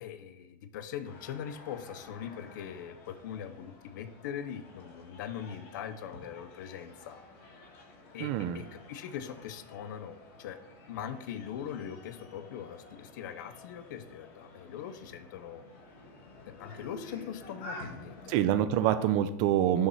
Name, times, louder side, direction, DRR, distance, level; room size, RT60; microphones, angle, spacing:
voice 1, 0.0-7.2 8.1-10.6 10.9-15.6 16.6-18.4, left 9 dB, 70° left, 10 dB, 0.5 m, -41 dB
sound 1, 1.0-18.5, left 2 dB, 45° left, 1.3 m, -51 dB
voice 2, 8.2-8.6 18.3-19.9, right 11 dB, 40° right, 10 dB, 0.3 m, -26 dB
6.3 x 3.1 x 5.3 m, 0.84 s
supercardioid pair, 165°, 11 cm